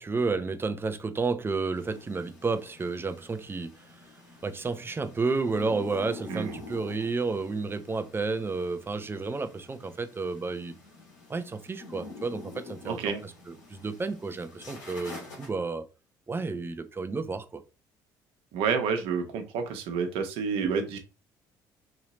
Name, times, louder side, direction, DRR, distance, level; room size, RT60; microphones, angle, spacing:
voice 1, 0.0-3.9 4.4-10.7 11.3-15.9 16.3-17.6, right 4 dB, 25° right, 0.7 m, -31 dB
sound 1, 1.7-15.5, left 3 dB, 85° left, 1.6 m, -47 dB
voice 2, 12.8-13.2 18.5-21.0, right 6 dB, 70° right, 1.0 m, -29 dB
3.2 x 2.9 x 3.9 m
hypercardioid pair, 60°, 10 cm